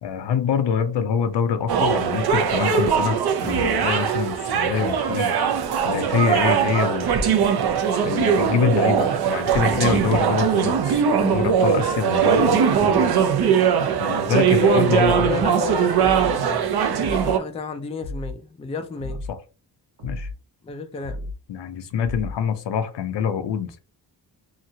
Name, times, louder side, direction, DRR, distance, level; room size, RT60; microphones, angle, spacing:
voice 1, 0.0-5.3 5.8-7.4 8.0-13.3 14.0-15.4 19.3-19.4 20.0-20.3 21.5-23.8, left 7 dB, 75° left, 0.6 m, -25 dB
sound 1, 1.7-17.4, right 7 dB, 60° right, 0.6 m, -20 dB
voice 2, 14.5-19.2 20.6-21.3, left 4 dB, 15° left, 0.3 m, -31 dB
sound 2, 16.0-16.4 17.0-17.4 18.0-18.4 19.0-19.4 20.0-20.4 21.0-21.4 22.0-22.4, left 1 dB, 80° right, 1.3 m, -33 dB
2.9 x 2.4 x 2.7 m
cardioid pair, 110°, 43 cm